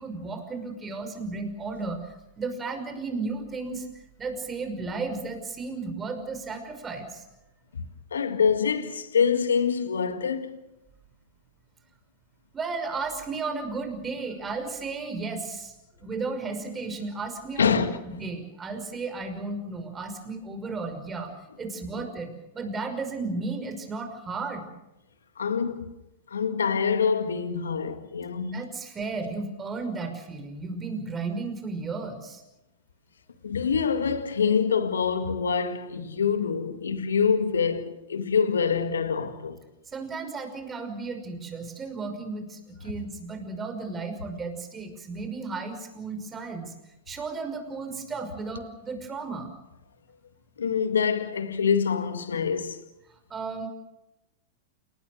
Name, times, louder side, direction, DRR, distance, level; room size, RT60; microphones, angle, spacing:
voice 1, 0.0-3.9 4.2-7.2 12.5-15.7 16.0-21.3 21.6-24.7 28.5-32.4 39.9-46.7 47.1-49.5 53.3-53.7, right 3 dB, 20° right, 5.8 m, -34 dB
voice 2, 8.1-10.6 17.6-18.0 22.0-22.1 25.4-25.9 26.3-28.6 33.4-39.6 50.6-52.8, left 6 dB, 80° left, 1.9 m, -25 dB
29.0 x 19.5 x 6.5 m
hypercardioid pair, 100°, 0 cm